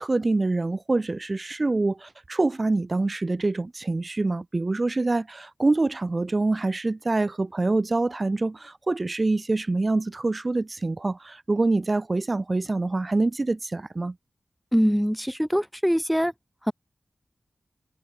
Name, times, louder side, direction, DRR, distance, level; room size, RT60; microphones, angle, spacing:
voice 1, 0.0-14.1, right 2 dB, 45° right, 0.7 m, -25 dB
voice 2, 14.7-16.3 16.7-16.8, equal, ahead, 4.1 m, -23 dB
cardioid pair, 40°, 0 cm